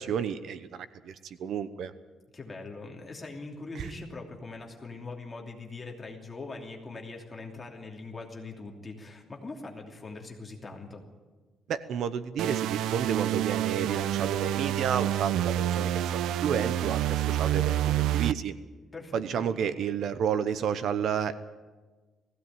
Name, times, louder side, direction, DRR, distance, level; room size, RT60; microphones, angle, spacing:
voice 1, 0.0-1.9 3.7-3.9 11.7-18.5 19.1-21.3, right 8 dB, 55° right, 13 dB, 0.8 m, -31 dB
voice 2, 2.3-11.0 18.9-19.5, left 3 dB, 20° left, 0 dB, 2.9 m, -42 dB
sound 1, 12.4-18.3, right 12 dB, 85° right, 0.6 m, -28 dB
19.5 x 16.0 x 9.1 m, 1.3 s
cardioid pair, 175°, 0 cm